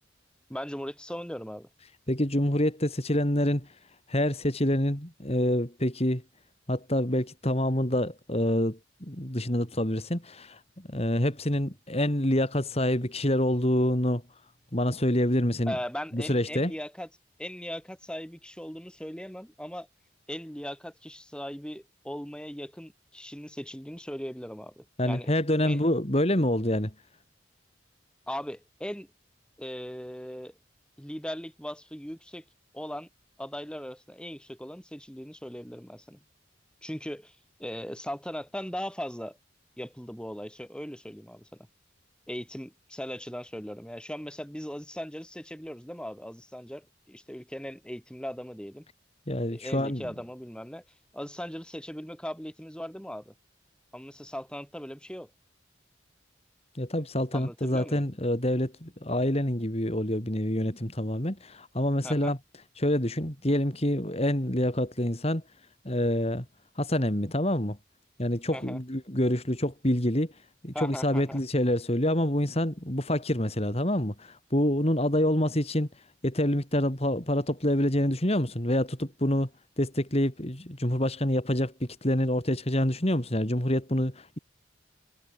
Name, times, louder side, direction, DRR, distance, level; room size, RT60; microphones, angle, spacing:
voice 1, 0.5-1.7 15.7-17.1 17.4-19.9 20.3-25.3 25.6-25.8 28.3-29.1 29.6-30.5 31.0-32.4 32.7-33.1 33.4-36.2 36.8-39.4 39.8-41.6 42.3-48.9 49.5-50.8 51.1-53.3 53.9-55.3 57.3-58.0 62.0-62.3 68.5-68.8 70.7-71.4, equal, 5° left, 5.4 m, -39 dB
voice 2, 2.1-3.7 4.1-6.2 6.7-14.2 14.7-15.8 16.1-16.7 25.0-26.9 49.3-50.1 56.7-62.4 62.8-65.4 65.8-66.5 66.8-67.8 68.2-70.3 70.6-75.9 76.2-79.5 79.8-84.4, left 1 dB, 35° left, 4.0 m, -27 dB
head